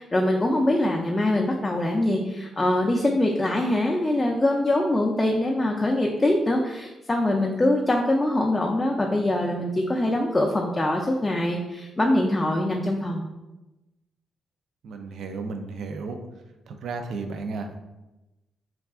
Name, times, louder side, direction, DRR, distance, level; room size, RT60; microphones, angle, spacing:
voice 1, 0.0-13.2, left 1 dB, 20° left, -1 dB, 0.3 m, -23 dB
voice 2, 14.8-16.2 16.7-17.8, right 4 dB, 75° right, 6 dB, 0.3 m, -33 dB
2.3 x 2.3 x 3.6 m, 1.0 s
cardioid pair, 85°, 0 cm